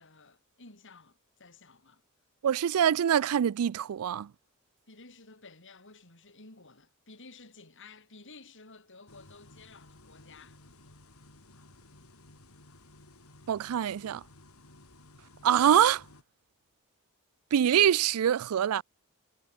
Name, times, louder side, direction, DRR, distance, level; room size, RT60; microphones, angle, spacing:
voice 1, 0.0-2.0 4.9-10.6, left 3 dB, 60° left, 6.3 m, -53 dB
voice 2, 2.4-4.3 13.5-14.2 15.4-16.0 17.5-18.8, right 9 dB, 85° right, 0.4 m, -24 dB
sound 1, 9.1-16.2, left 2 dB, 85° left, 4.3 m, -56 dB
head